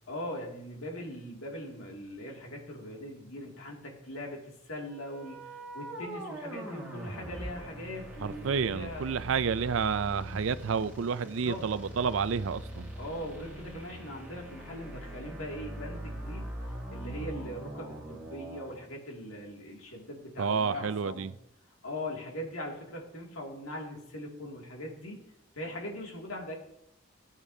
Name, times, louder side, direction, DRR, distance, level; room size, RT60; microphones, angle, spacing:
voice 1, 0.1-9.0 11.4-11.6 13.0-16.5 16.9-21.3 21.8-25.2 25.6-26.5, left 1 dB, 85° left, 2.4 m, -41 dB
sound 1, 4.9-18.7, right 1 dB, 10° right, 2.8 m, -42 dB
voice 2, 8.2-12.9 20.4-21.3, right 6 dB, 70° right, 0.4 m, -30 dB
16.0 x 8.2 x 2.8 m
head